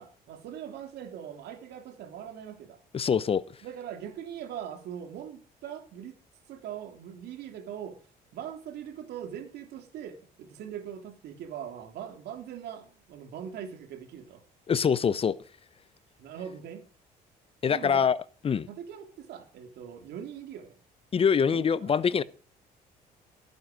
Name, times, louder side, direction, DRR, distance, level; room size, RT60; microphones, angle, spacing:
voice 1, 0.0-2.8 3.6-6.2 6.5-8.0 8.3-14.4 16.2-16.9 17.7-18.1 18.7-20.8 21.5-21.9, right 9 dB, 75° right, 3.2 m, -41 dB
voice 2, 2.9-3.4 14.7-15.4 17.6-18.2 18.4-18.7 21.1-22.2, left 7 dB, 35° left, 0.8 m, -24 dB
16.5 x 9.5 x 5.1 m
cardioid pair, 110°, 17 cm